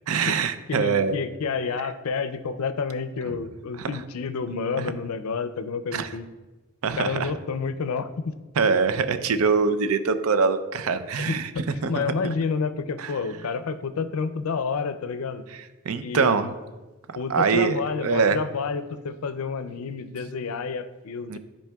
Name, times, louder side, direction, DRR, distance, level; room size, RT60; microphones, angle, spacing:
voice 1, 0.1-1.2 3.8-3.9 5.9-6.1 6.8-7.3 8.6-11.5 11.8-12.0 13.0-13.1 15.9-16.5 17.3-18.4 21.3-21.4, right 5 dB, 85° right, 11 dB, 0.5 m, -23 dB
voice 2, 0.7-6.3 7.0-8.3 11.2-15.5 16.0-16.5 17.2-21.4, left 5 dB, 85° left, 12 dB, 0.4 m, -29 dB
11.5 x 4.3 x 2.3 m, 1.2 s
head